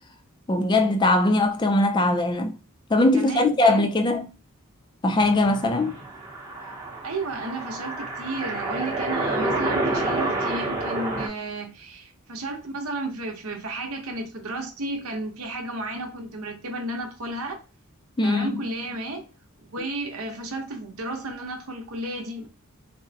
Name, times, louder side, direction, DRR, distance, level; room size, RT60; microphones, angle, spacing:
voice 1, 0.5-2.6 2.9-4.3 5.0-6.0 18.2-18.6, left 2 dB, 20° left, 0.3 m, -21 dB
voice 2, 3.1-3.9 7.0-17.6 18.2-19.3 19.6-22.5, right 2 dB, 80° right, 0.8 m, -33 dB
sound 1, 5.2-11.3, right 2 dB, 15° right, 0.7 m, -29 dB
3.6 x 2.1 x 2.7 m
head